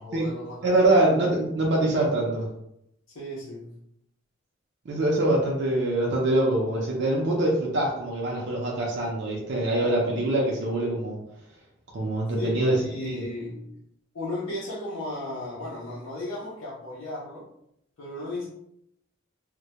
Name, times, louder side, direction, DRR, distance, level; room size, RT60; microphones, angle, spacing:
voice 1, 0.0-1.1 3.1-3.7 12.4-13.7 14.1-17.5 18.0-18.5, left 1 dB, 85° left, -7 dB, 0.6 m, -35 dB
voice 2, 0.6-2.5 4.9-11.2 11.9-12.8 13.0-13.2, right 1 dB, 60° right, -3 dB, 0.5 m, -24 dB
2.1 x 2.1 x 2.7 m, 0.77 s
head